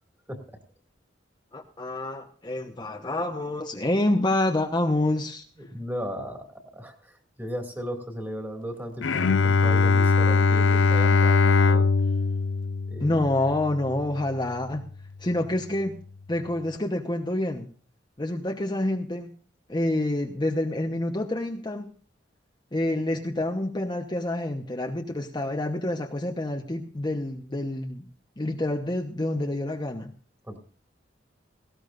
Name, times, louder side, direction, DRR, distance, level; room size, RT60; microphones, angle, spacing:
voice 1, 1.5-5.4 13.0-14.8 15.2-16.0 16.3-17.7 18.2-19.3 19.7-21.9 22.7-28.1 28.4-30.1, left 1 dB, 25° left, 2 dB, 1.1 m, -27 dB
voice 2, 5.7-11.9 12.9-13.1 30.5-30.6, equal, 10° right, 3 dB, 2.4 m, -36 dB
Bowed string instrument, 9.0-14.3, left 4 dB, 85° left, 0.6 m, -21 dB
18.5 x 16.5 x 2.6 m, 0.41 s
head